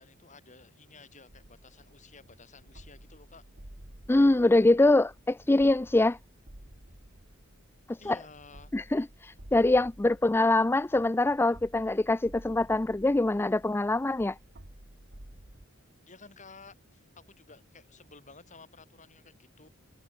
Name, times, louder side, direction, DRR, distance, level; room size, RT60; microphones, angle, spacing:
voice 1, 0.0-3.4 8.0-8.7 16.1-19.7, left 4 dB, 35° left, 7.7 m, -53 dB
sound 1, 1.3-15.7, right 1 dB, 50° right, 3.0 m, -52 dB
voice 2, 4.1-6.2 7.9-8.2 8.7-14.4, left 2 dB, 10° left, 0.4 m, -24 dB
head